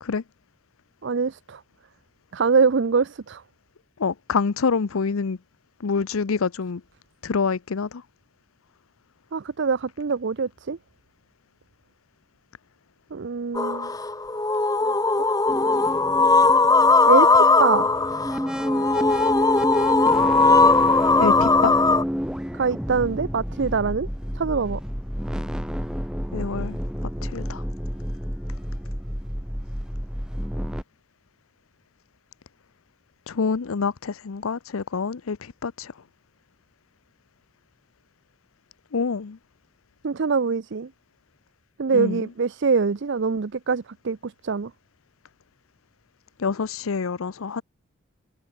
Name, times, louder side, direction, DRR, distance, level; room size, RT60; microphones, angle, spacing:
voice 1, 1.0-1.6 2.3-3.4 9.3-10.8 13.1-13.9 14.8-15.0 17.1-17.9 22.5-24.1 24.4-24.8 40.0-40.9 41.8-44.7, right 5 dB, 55° right, 0.5 m, -24 dB
voice 2, 4.0-5.4 5.8-6.8 7.2-8.0 21.2-21.8 26.3-26.8 27.2-27.6 33.3-35.9 38.9-39.4 41.9-42.3 46.4-47.6, left 5 dB, 80° left, 0.6 m, -26 dB
sound 1, 13.5-22.0, left 3 dB, 15° left, 1.1 m, -19 dB
sound 2, 15.5-30.8, equal, 5° right, 3.7 m, -29 dB
head